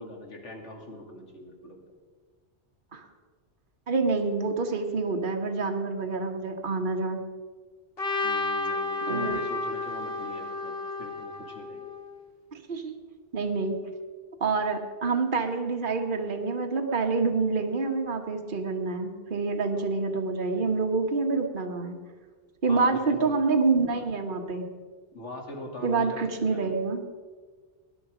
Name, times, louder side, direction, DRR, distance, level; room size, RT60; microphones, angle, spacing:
voice 1, 0.0-1.8 8.2-11.9 22.7-23.5 25.1-26.7, left 1 dB, 80° left, 1 dB, 2.8 m, -41 dB
voice 2, 3.9-7.2 9.0-9.4 12.5-13.0 13.3-13.8 14.4-22.0 22.6-24.7 25.8-27.0, right 4 dB, 45° right, 3 dB, 1.5 m, -27 dB
Trumpet, 8.0-12.1, left 3 dB, 55° left, 1.8 m, -31 dB
19.5 x 10.5 x 5.1 m, 1.5 s
omnidirectional pair, 1.2 m